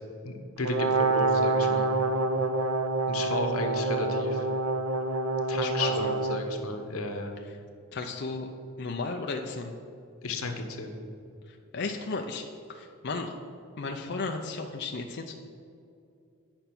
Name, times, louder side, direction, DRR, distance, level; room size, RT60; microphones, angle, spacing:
voice 1, 0.2-2.0 3.1-4.5 5.5-7.4 10.2-11.0, left 3 dB, 90° left, 5 dB, 1.1 m, -33 dB
Brass instrument, 0.6-6.5, right 3 dB, 80° right, 0.7 m, -27 dB
voice 2, 5.6-6.1 7.9-8.5 8.8-9.7 11.5-12.4 12.7-13.3 13.8-15.3, left 3 dB, 55° left, 3 dB, 0.5 m, -34 dB
8.9 x 5.5 x 5.9 m, 2.5 s
head